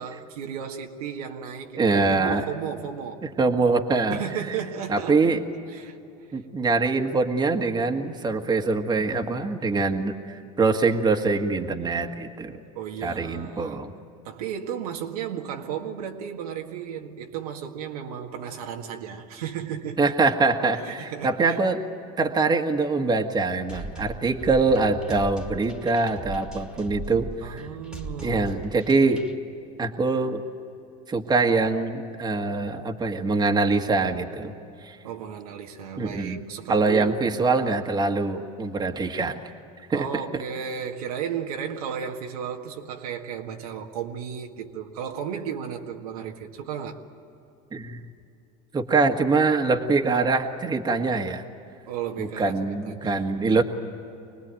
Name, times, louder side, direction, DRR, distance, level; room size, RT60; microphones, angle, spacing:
voice 1, 0.0-3.3 4.1-5.4 5.7-6.0 12.7-13.9 14.2-20.1 20.7-21.6 27.4-28.8 35.0-37.2 39.9-47.0 51.9-53.5, right 8 dB, 90° right, 1.9 m, -34 dB
voice 2, 1.8-2.4 3.2-4.2 4.9-5.4 6.3-12.6 13.0-13.9 20.0-21.8 22.2-27.7 28.2-29.2 29.8-30.4 31.1-34.5 34.8-35.0 36.0-36.4 36.7-39.4 39.9-40.1 47.7-48.1 48.7-51.4 52.2-53.6, right 3 dB, 20° right, 1.6 m, -24 dB
sound 1, 23.7-29.3, right 2 dB, 5° right, 2.1 m, -39 dB
25.5 x 19.5 x 9.1 m
supercardioid pair, 105°, 19 cm